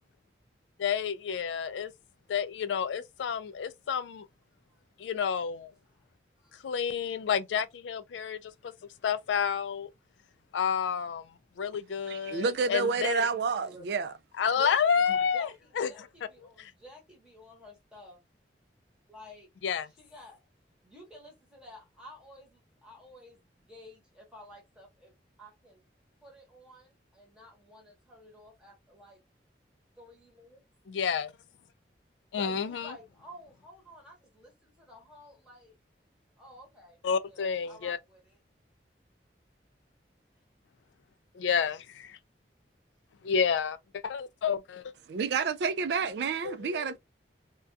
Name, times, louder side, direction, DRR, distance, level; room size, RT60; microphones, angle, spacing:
voice 1, 0.8-1.9 2.3-4.3 5.0-5.7 6.6-8.7 9.0-9.9 10.5-13.3 14.4-15.5 15.8-16.1 16.6-16.7 19.6-19.9 30.9-31.3 32.3-33.0 37.0-38.0 41.3-42.2 43.2-43.8 44.0-44.9 46.4-46.8, left 7 dB, 85° left, 0.3 m, -30 dB
voice 2, 12.1-14.1 45.1-47.0, right 5 dB, 70° right, 0.3 m, -29 dB
voice 3, 14.5-14.9 15.3-18.2 19.1-19.5 20.0-20.4 20.8-25.1 25.4-25.8 26.2-29.2 30.0-30.6 32.3-35.7 36.4-37.0 37.2-38.3, equal, 5° right, 0.8 m, -52 dB
2.3 x 2.2 x 2.5 m
head